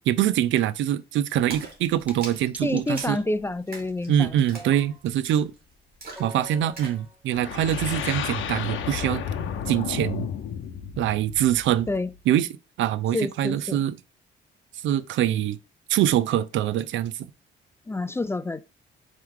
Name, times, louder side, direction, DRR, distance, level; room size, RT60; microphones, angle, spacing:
voice 1, 0.0-3.2 4.1-5.5 6.2-9.2 9.7-10.3 11.0-11.9 12.3-12.5 12.8-13.9 14.8-15.6 15.9-17.3, right 11 dB, 75° right, 0.4 m, -24 dB
Splash splatter, 1.5-7.0, right 3 dB, 50° right, 2.1 m, -43 dB
sound 1, 2.1-2.2 2.5-3.2 4.5-5.0 6.2-7.2 8.2-8.3 9.1-9.2, right 1 dB, 5° right, 0.8 m, -44 dB
voice 2, 2.6-4.4 11.9-12.1 13.1-13.8 17.9-18.7, left 2 dB, 10° left, 0.3 m, -28 dB
sound 2, 7.3-12.2, left 8 dB, 75° left, 0.8 m, -32 dB
4.4 x 3.1 x 3.7 m
cardioid pair, 90°, 20 cm